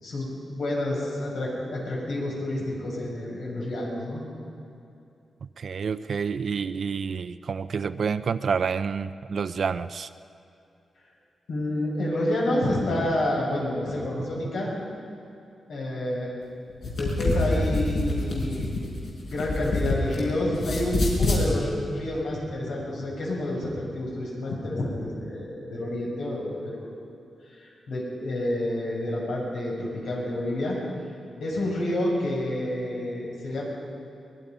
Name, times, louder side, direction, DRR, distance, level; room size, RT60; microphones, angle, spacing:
voice 1, 0.0-4.2 11.5-14.7 15.7-16.3 17.0-18.8 19.3-26.9 27.6-30.8 31.4-33.7, left 1 dB, 80° left, -3 dB, 7.1 m, -29 dB
voice 2, 5.4-10.1 14.2-14.3, right 6 dB, 50° right, 11 dB, 0.4 m, -29 dB
sound 1, 16.7-20.2 20.5-21.4, left 2 dB, 60° left, 5.7 m, -26 dB
23.5 x 21.0 x 5.5 m, 2.6 s
wide cardioid pair, 160°, 0 cm